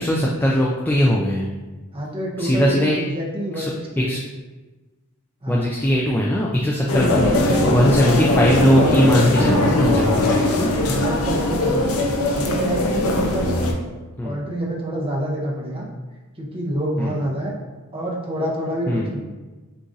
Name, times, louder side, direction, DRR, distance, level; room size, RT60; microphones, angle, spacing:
voice 1, 0.0-1.5 2.4-3.1 3.5-4.2 5.5-10.7 14.2-14.4 17.0-17.2 18.9-19.1, equal, 10° left, -3 dB, 0.3 m, -20 dB
voice 2, 1.9-3.7 3.9-4.1 5.4-5.7 6.8-8.2 10.8-11.8 12.3-13.6 14.2-15.9 16.4-17.5 17.9-19.2, right 1 dB, 25° right, -3 dB, 0.8 m, -27 dB
sound 1, 6.9-13.7, left 1 dB, 75° left, 0.6 m, -20 dB
6.7 x 2.5 x 2.6 m, 1.2 s
head